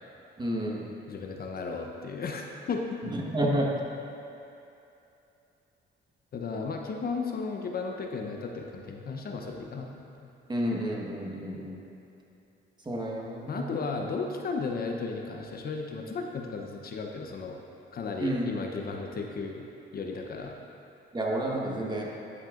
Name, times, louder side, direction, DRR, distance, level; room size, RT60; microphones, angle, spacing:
voice 1, 0.4-0.9 3.1-3.7 10.5-11.8 12.8-14.0 18.2-18.5 21.1-22.1, right 1 dB, 20° right, -2 dB, 1.3 m, -30 dB
voice 2, 1.1-2.9 6.3-10.3 13.5-17.6 17.9-19.6 19.9-20.6, left 4 dB, 50° left, 2 dB, 0.7 m, -34 dB
10.5 x 7.9 x 2.5 m, 2.8 s
cardioid pair, 90°, 20 cm